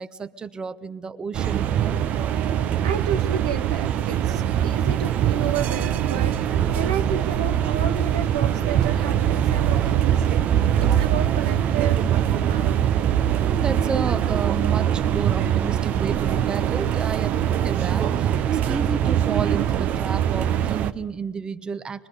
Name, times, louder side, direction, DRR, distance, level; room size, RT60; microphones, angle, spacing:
voice 1, 0.0-2.0 13.4-22.1, right 5 dB, 25° right, 11 dB, 0.9 m, -32 dB
sound 1, 1.3-20.9, right 10 dB, 50° right, 0.8 m, -22 dB
voice 2, 2.8-10.5 10.8-12.7 14.6-14.7, right 8 dB, 90° right, 6 dB, 0.8 m, -31 dB
25.0 x 21.0 x 5.2 m, 1.0 s
hypercardioid pair, 85°, 3 cm